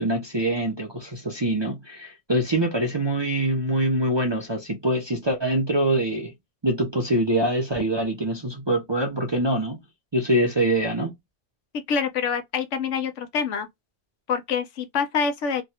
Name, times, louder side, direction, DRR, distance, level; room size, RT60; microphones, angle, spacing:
voice 1, 0.0-6.3 6.6-9.8 10.1-11.1, right 1 dB, 30° right, 0.5 m, -24 dB
voice 2, 11.9-13.7 14.3-15.6, left 6 dB, 80° left, 1.0 m, -26 dB
3.2 x 2.2 x 2.7 m
omnidirectional pair, 1.3 m